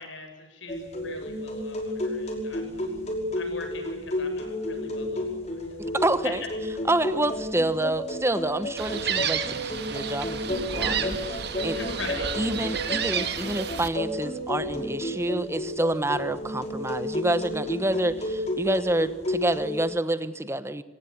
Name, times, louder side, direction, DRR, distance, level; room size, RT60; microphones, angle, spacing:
voice 1, 0.0-2.9 3.3-5.6 11.6-12.3, left 2 dB, 70° left, 5 dB, 7.8 m, -41 dB
sound 1, 0.7-19.8, left 1 dB, 35° left, 5.5 m, -32 dB
voice 2, 6.0-6.4 6.9-11.8 12.4-20.8, right 1 dB, 15° right, 12 dB, 1.2 m, -28 dB
Gull seagull, 8.8-13.9, right 7 dB, 55° right, 2.0 m, -31 dB
26.0 x 19.0 x 10.0 m, 1.2 s
head